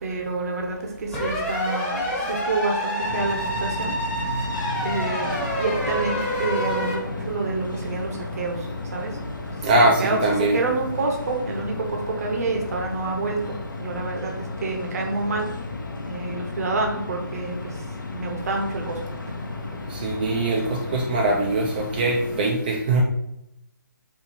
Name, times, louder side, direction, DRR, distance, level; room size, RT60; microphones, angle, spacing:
voice 1, 0.0-3.9 4.2-4.5 4.8-5.3 5.6-8.7 8.9-9.1 9.5-9.7 10.0-15.5 16.0-17.7 18.1-19.0, right 3 dB, 50° right, 2 dB, 0.8 m, -28 dB
sound 1, 1.1-7.0, equal, 10° left, 1.0 m, -27 dB
sound 2, 3.0-22.5, left 2 dB, 70° left, 0.8 m, -33 dB
voice 2, 9.6-10.6 19.9-23.0, right 2 dB, 30° right, 1 dB, 0.4 m, -22 dB
4.4 x 2.6 x 4.1 m, 0.82 s
figure-of-eight pair, 145°, 11 cm